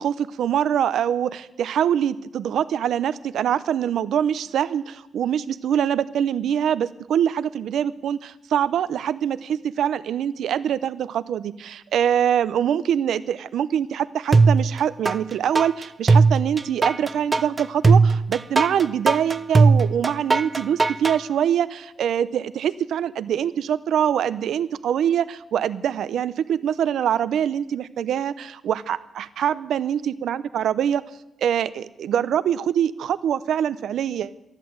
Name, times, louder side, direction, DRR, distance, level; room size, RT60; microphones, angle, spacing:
voice 1, 0.0-31.0 31.4-34.3, right 9 dB, 80° right, 15 dB, 0.7 m, -24 dB
sound 1, 14.3-15.2 15.5-21.2, right 4 dB, 25° right, 0.6 m, -17 dB
13.0 x 10.5 x 7.8 m, 0.89 s
cardioid pair, 105°, 0 cm